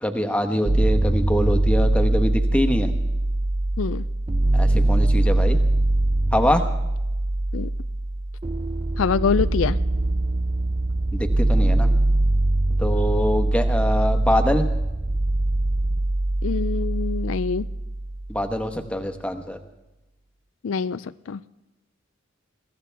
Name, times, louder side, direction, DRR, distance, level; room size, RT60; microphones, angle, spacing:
voice 1, 0.0-2.9 4.5-5.6 6.3-6.6 11.1-11.9 12.8-14.7 18.3-19.6, equal, 5° left, 6 dB, 1.1 m, -24 dB
sound 1, 0.7-18.6, right 1 dB, 25° right, 0.5 m, -22 dB
voice 2, 9.0-9.8 16.4-17.7 20.6-21.4, left 5 dB, 75° left, 15 dB, 0.4 m, -25 dB
22.0 x 14.5 x 3.4 m, 0.99 s
head